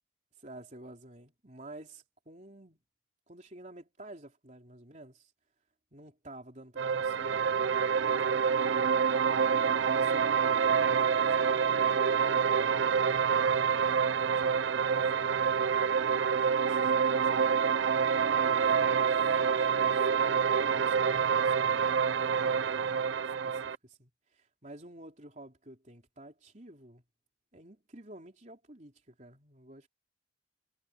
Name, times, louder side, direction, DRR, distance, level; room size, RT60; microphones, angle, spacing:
voice 1, 0.4-2.8 3.3-5.3 5.9-8.9 9.5-12.8 13.3-15.8 16.3-20.1 20.5-23.2 23.4-27.0 27.5-29.9, right 1 dB, 35° right, 4.0 m, -51 dB
sound 1, 6.8-23.7, right 6 dB, 70° right, 0.5 m, -27 dB
head